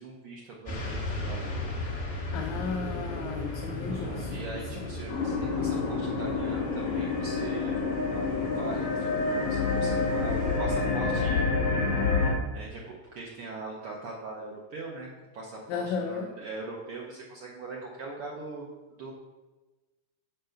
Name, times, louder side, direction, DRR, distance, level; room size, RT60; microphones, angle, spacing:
voice 1, 0.0-1.6 3.8-11.8 12.5-18.7 19.0-19.1, right 3 dB, 85° right, -3 dB, 1.2 m, -41 dB
sound 1, 0.6-10.6, left 2 dB, 30° left, 1.2 m, -36 dB
voice 2, 2.3-4.4 4.8-4.9 15.7-16.3, left 5 dB, 80° left, 3 dB, 1.8 m, -34 dB
sound 2, 5.1-12.3, left 4 dB, 60° left, 2.6 m, -28 dB
6.6 x 4.5 x 6.5 m, 1.2 s
omnidirectional pair, 3.8 m